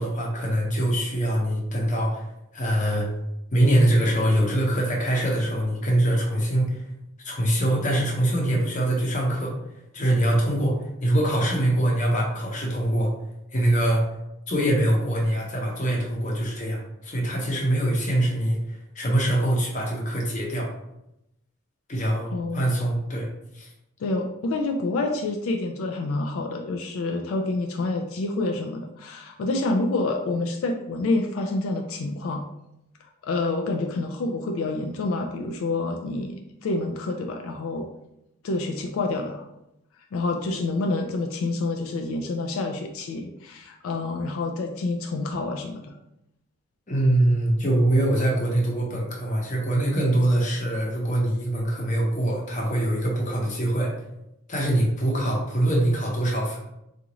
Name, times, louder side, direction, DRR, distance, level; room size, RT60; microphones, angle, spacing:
voice 1, 0.0-2.2 2.5-3.1 3.5-6.8 7.2-9.5 9.9-13.1 13.5-14.0 14.5-20.7 21.9-23.3 23.5-23.7 46.9-53.9 54.5-56.6, right 1 dB, 35° left, -2 dB, 0.7 m, -23 dB
voice 2, 24.0-32.4 33.2-37.9 38.4-39.4 40.1-46.0, left 2 dB, 80° left, 3 dB, 0.3 m, -28 dB
3.8 x 2.4 x 2.9 m, 0.85 s
head